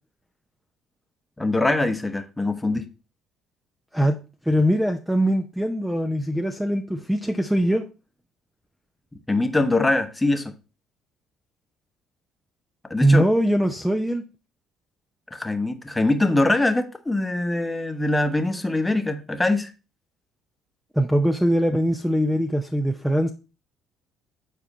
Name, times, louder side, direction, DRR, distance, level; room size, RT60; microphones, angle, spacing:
voice 1, 1.4-2.9 9.3-10.5 12.9-13.2 15.3-19.7, left 2 dB, 15° left, 1.0 m, -23 dB
voice 2, 3.9-7.8 13.0-14.2 20.9-23.3, equal, 5° right, 0.6 m, -22 dB
7.2 x 4.4 x 3.9 m
supercardioid pair, 75°, 0 cm